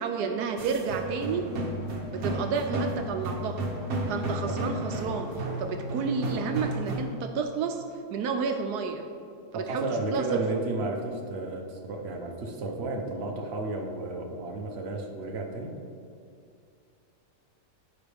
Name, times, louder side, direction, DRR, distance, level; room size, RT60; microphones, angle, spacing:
voice 1, 0.0-1.4 2.1-3.6 4.1-7.8 8.1-9.1 9.5-10.4, right 5 dB, 80° right, 5 dB, 1.2 m, -30 dB
sound 1, 0.6-7.0, right 1 dB, 60° right, 1.5 m, -32 dB
voice 2, 9.5-15.7, right 2 dB, 45° right, 2 dB, 1.1 m, -33 dB
14.5 x 5.3 x 3.5 m, 2.5 s
omnidirectional pair, 1.7 m